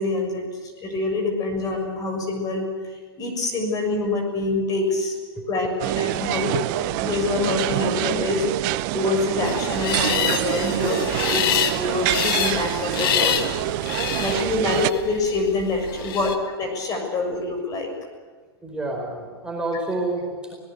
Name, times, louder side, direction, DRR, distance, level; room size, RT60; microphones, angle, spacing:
voice 1, 0.0-5.2 5.5-5.7 6.0-13.4 14.2-16.3 16.6-17.9, left 2 dB, 30° left, 4 dB, 6.7 m, -26 dB
sound 1, 5.8-14.9, right 17 dB, 50° right, 0.9 m, -26 dB
sound 2, 9.4-16.4, left 10 dB, 60° left, 2.0 m, -27 dB
voice 2, 18.6-20.5, right 2 dB, 5° right, 0 dB, 4.9 m, -30 dB
24.5 x 19.0 x 8.2 m, 1.4 s
hypercardioid pair, 115°, 13 cm